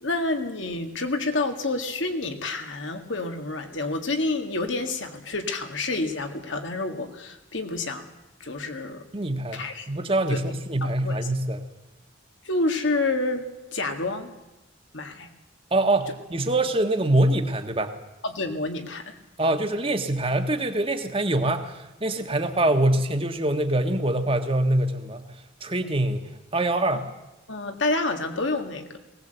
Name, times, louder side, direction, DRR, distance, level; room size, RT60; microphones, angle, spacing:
voice 1, 0.0-8.1 8.4-9.1 9.5-9.9 10.3-10.4 10.8-11.3 12.4-14.3 14.9-15.3 18.2-19.2 26.9-27.0 27.5-29.0, left 2 dB, 70° left, 5 dB, 2.0 m, -28 dB
voice 2, 9.1-11.6 15.7-17.9 19.4-25.3 25.6-26.2 26.5-27.0, right 1 dB, 25° right, 7 dB, 1.4 m, -24 dB
19.5 x 18.0 x 8.0 m, 1.0 s
head